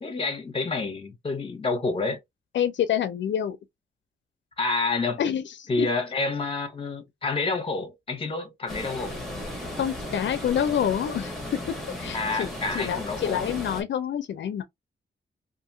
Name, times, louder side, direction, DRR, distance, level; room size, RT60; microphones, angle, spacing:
voice 1, 0.0-2.2 4.6-5.2 5.7-9.2 12.1-13.5, left 3 dB, 30° left, 0.7 m, -28 dB
voice 2, 2.5-3.6 5.2-5.9 9.8-12.5 12.7-14.6, left 9 dB, 80° left, 0.4 m, -27 dB
sound 1, 8.7-13.8, left 1 dB, ahead, 1.1 m, -35 dB
2.8 x 2.5 x 2.5 m
wide cardioid pair, 165°, 19 cm